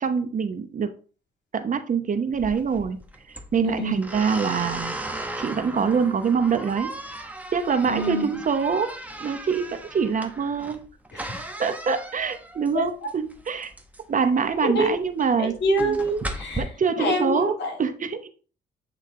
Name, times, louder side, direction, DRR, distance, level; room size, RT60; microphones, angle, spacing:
voice 1, 0.0-0.9 1.5-3.0 3.3-4.9 5.4-6.9 7.2-8.9 9.2-10.8 11.6-13.7 14.1-16.0 16.6-18.3, right 6 dB, 40° right, 9 dB, 0.8 m, -25 dB
sound 1, 2.3-16.6, right 1 dB, 5° right, 1.0 m, -37 dB
voice 2, 3.6-4.0 7.9-8.2 11.1-11.4 12.7-12.8 14.7-14.9 15.4-16.6 17.0-17.7, equal, 60° left, 3 dB, 2.0 m, -25 dB
8.6 x 3.2 x 3.7 m, 0.38 s
cardioid pair, 90°, 20 cm